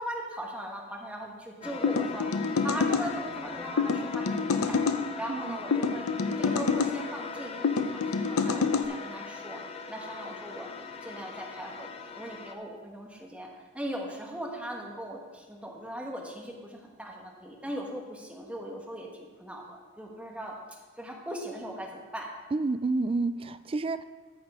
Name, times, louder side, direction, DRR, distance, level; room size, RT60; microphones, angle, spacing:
voice 1, 0.0-4.8 5.1-9.6 9.9-10.7 11.0-22.3, right 1 dB, 5° right, -1 dB, 1.3 m, -39 dB
sound 1, 1.6-12.5, left 4 dB, 30° left, 0.6 m, -40 dB
sound 2, 1.8-3.1 3.8-5.0 5.7-6.9 7.6-8.9, left 5 dB, 90° left, 0.7 m, -27 dB
voice 2, 22.5-24.0, right 3 dB, 25° right, 12 dB, 0.3 m, -29 dB
13.5 x 5.6 x 4.9 m, 1.3 s
head